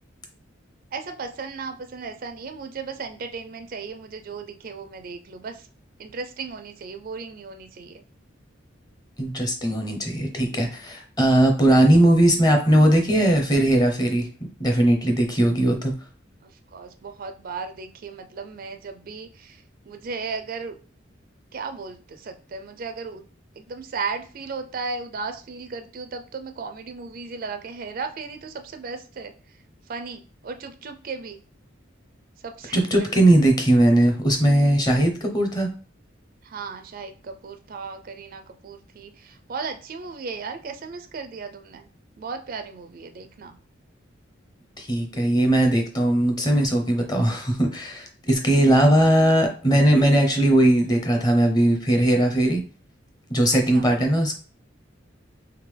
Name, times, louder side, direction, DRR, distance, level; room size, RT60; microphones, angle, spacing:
voice 1, 0.9-5.7 6.0-8.0 16.4-20.8 21.5-23.2 23.6-31.4 32.4-33.2 36.4-41.9 42.2-43.6 53.5-53.9, right 4 dB, 50° right, 8 dB, 0.4 m, -36 dB
voice 2, 9.2-14.3 14.6-15.9 32.7-35.7 44.8-52.6 53.3-54.4, right 1 dB, 20° left, 3 dB, 0.7 m, -19 dB
3.6 x 3.3 x 3.3 m, 0.38 s
head